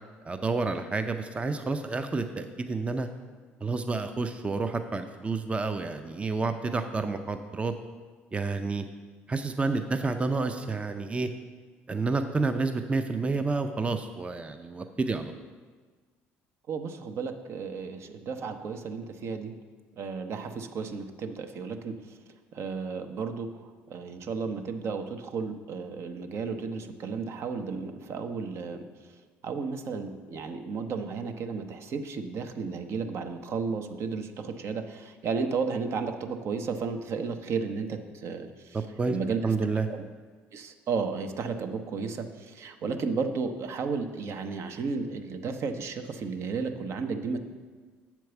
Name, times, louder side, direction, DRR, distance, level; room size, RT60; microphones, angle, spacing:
voice 1, 0.2-3.1 3.6-7.7 8.3-8.8 9.3-11.3 11.9-15.3 38.7-39.2 39.4-39.9, right 3 dB, 20° right, 8 dB, 0.5 m, -29 dB
voice 2, 16.7-19.5 20.0-22.2 22.5-29.1 29.4-38.8 39.1-39.5 39.9-40.0 40.5-47.4, right 5 dB, 60° right, 7 dB, 0.7 m, -33 dB
7.0 x 4.6 x 6.7 m, 1.4 s
supercardioid pair, 70°, 5 cm